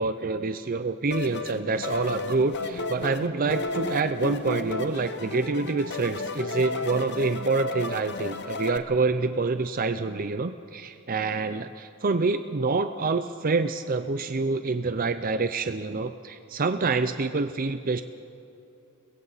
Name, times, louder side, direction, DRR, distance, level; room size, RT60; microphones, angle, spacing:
voice 1, 0.0-18.0, right 3 dB, 40° right, 9 dB, 0.6 m, -27 dB
sound 1, 1.1-8.8, left 3 dB, 50° left, 1.0 m, -33 dB
30.0 x 22.0 x 4.1 m, 2.9 s
head